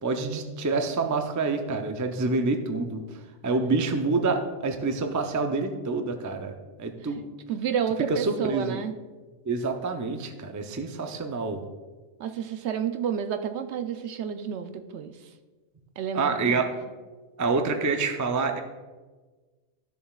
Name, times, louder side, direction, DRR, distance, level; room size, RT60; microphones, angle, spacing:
voice 1, 0.0-3.0 3.4-6.5 6.8-7.3 8.1-8.8 9.5-11.6 16.1-16.7 17.4-18.6, right 3 dB, 25° right, 5 dB, 0.4 m, -27 dB
voice 2, 7.5-8.9 12.2-15.1 16.0-16.7, right 7 dB, 70° right, 8 dB, 0.8 m, -30 dB
12.5 x 6.9 x 2.4 m, 1.3 s
omnidirectional pair, 1.2 m